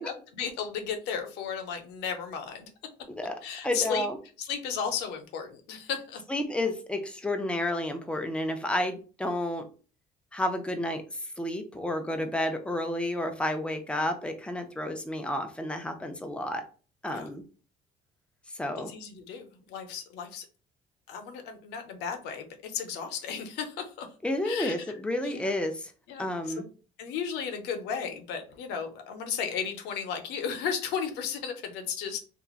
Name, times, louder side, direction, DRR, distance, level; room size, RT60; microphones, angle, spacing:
voice 1, 0.0-2.7 3.4-4.1 4.4-6.2 17.1-17.3 18.9-20.5 21.1-24.1 24.4-24.8 25.2-25.5 26.1-26.3 26.6-26.7 27.0-32.2, left 7 dB, 90° left, 5 dB, 0.6 m, -34 dB
voice 2, 3.2-4.2 6.3-9.7 10.3-11.0 11.4-16.6 17.0-17.4 18.5-18.9 24.2-25.9 26.2-26.6, left 1 dB, 5° left, 5 dB, 0.5 m, -31 dB
2.9 x 2.3 x 2.4 m, 0.37 s
cardioid pair, 110°, 17 cm